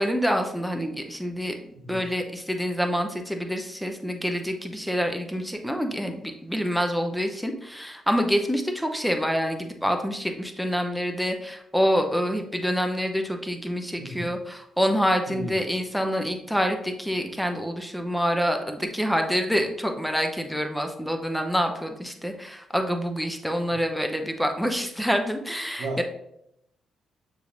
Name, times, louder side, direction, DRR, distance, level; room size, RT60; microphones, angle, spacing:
voice 1, 0.0-1.5 1.9-26.0, equal, 5° left, 5 dB, 0.8 m, -27 dB
voice 2, 1.8-2.1 14.0-14.3 15.3-15.6 25.8-26.0, right 2 dB, 70° right, 2 dB, 0.8 m, -34 dB
6.6 x 3.1 x 2.5 m, 0.77 s
hypercardioid pair, 45°, 0 cm